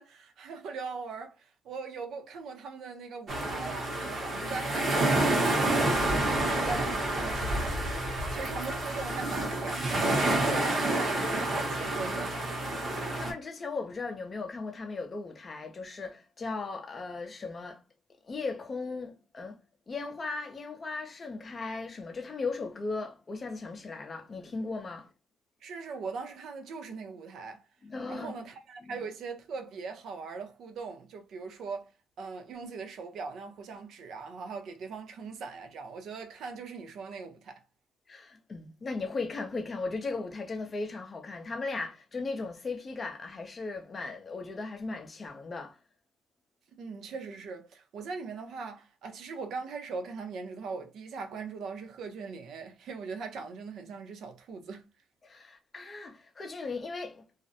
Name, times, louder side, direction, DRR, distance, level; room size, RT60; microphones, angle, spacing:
voice 1, 0.0-12.4 25.6-27.6 28.1-31.9 32.2-37.6 46.8-54.9, right 4 dB, 65° right, 0.6 m, -40 dB
sound 1, 3.3-13.3, right 1 dB, 45° right, 1.1 m, -29 dB
voice 2, 13.1-17.8 18.2-19.6 19.9-25.1 27.8-28.4 38.1-45.8 55.2-57.2, left 3 dB, 30° left, 0.5 m, -37 dB
2.4 x 2.0 x 2.6 m
cardioid pair, 115°, 0 cm